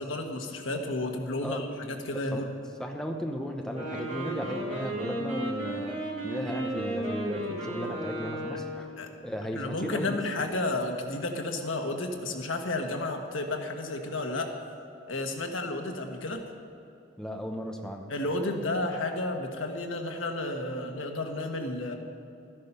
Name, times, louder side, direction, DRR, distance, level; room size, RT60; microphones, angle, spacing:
voice 1, 0.0-2.5 9.0-9.1 9.5-14.5 15.1-16.4 18.1-22.0, left 2 dB, 90° left, 4 dB, 1.4 m, -32 dB
voice 2, 2.1-2.5 2.8-8.9 9.2-10.5 17.2-18.1, equal, 5° left, 2 dB, 0.8 m, -36 dB
Wind instrument woodwind instrument, 3.6-8.9, right 1 dB, 35° right, 3.2 m, -34 dB
13.5 x 10.5 x 5.6 m, 2.8 s
head